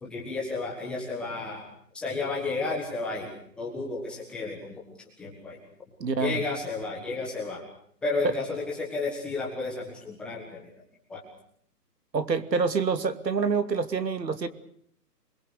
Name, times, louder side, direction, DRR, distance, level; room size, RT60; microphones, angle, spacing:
voice 1, 0.0-1.6 1.9-4.8 5.2-5.6 6.2-7.6 8.0-10.7 11.1-11.2, left 3 dB, ahead, -4 dB, 1.5 m, -32 dB
voice 2, 6.0-6.4 12.1-14.5, right 5 dB, 80° right, 11 dB, 2.8 m, -27 dB
28.5 x 22.5 x 6.7 m, 0.67 s
hypercardioid pair, 175°, 49 cm